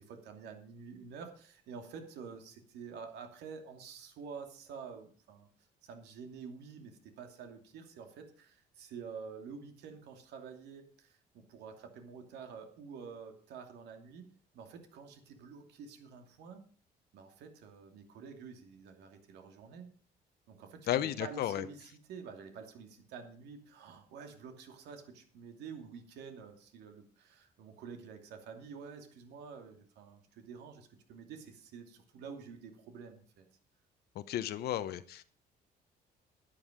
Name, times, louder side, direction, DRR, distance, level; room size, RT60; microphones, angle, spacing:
voice 1, 0.0-5.5 5.8-14.2 14.5-16.7 17.1-19.9 20.5-33.4, right 6 dB, 80° right, 5 dB, 2.7 m, -49 dB
voice 2, 20.9-21.6 34.1-35.2, left 12 dB, 70° left, 12 dB, 1.0 m, -33 dB
11.5 x 11.0 x 5.1 m, 0.44 s
cardioid pair, 110°, 17 cm